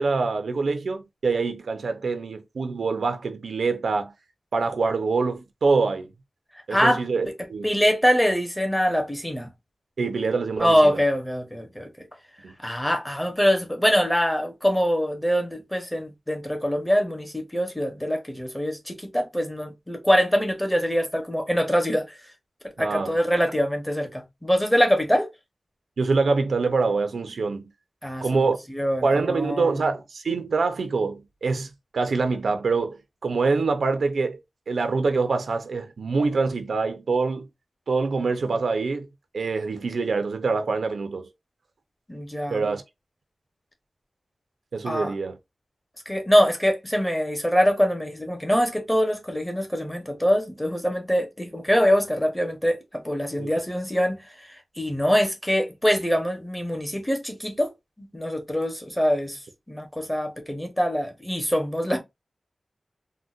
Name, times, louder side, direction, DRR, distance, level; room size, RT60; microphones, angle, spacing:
voice 1, 0.0-4.1 4.5-6.1 6.7-7.7 10.0-11.0 12.4-12.5 22.8-23.2 26.0-27.7 28.2-28.6 29.0-34.4 34.7-37.5 37.9-39.1 39.3-41.3 42.5-42.8 44.7-45.4 53.4-53.5, right 4 dB, 85° right, 0.5 m, -25 dB
voice 2, 6.7-7.0 7.6-9.5 10.6-12.1 12.6-22.2 22.8-25.3 28.0-28.4 28.7-29.9 42.1-42.6 44.8-45.1 46.1-54.2 54.5-57.7 58.0-59.4 59.7-62.0, equal, 10° left, 0.8 m, -24 dB
3.8 x 2.1 x 2.4 m
wide cardioid pair, 105°, 0 cm